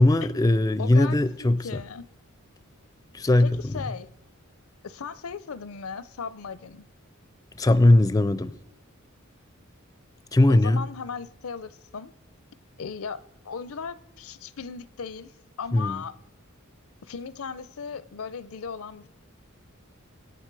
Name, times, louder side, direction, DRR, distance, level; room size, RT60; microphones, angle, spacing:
voice 1, 0.0-1.7 3.1-3.8 7.6-8.5 10.3-10.8 15.7-16.0, left 1 dB, 15° left, 0.4 m, -20 dB
voice 2, 0.8-2.1 3.4-4.1 4.8-6.8 10.5-12.1 12.8-15.3 15.6-16.2 17.0-19.1, left 6 dB, 85° left, 0.6 m, -37 dB
23.5 x 9.2 x 4.7 m
head